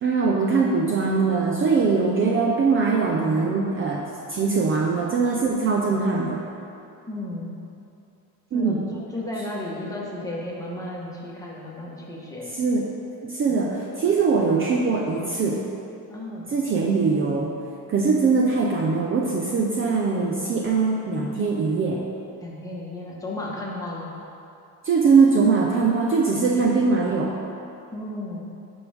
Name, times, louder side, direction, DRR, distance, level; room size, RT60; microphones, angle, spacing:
voice 1, 0.0-6.4 8.5-8.8 12.5-12.9 13.2-15.6 16.5-17.5 17.9-22.0 24.8-27.4, right 4 dB, 35° right, -1 dB, 0.6 m, -22 dB
voice 2, 7.1-7.5 8.5-12.5 13.5-13.8 16.1-16.5 22.4-24.1 26.4-26.6 27.9-28.4, left 1 dB, 10° left, -5 dB, 1.5 m, -34 dB
10.5 x 5.4 x 3.5 m, 2.7 s
cardioid pair, 120°, 37 cm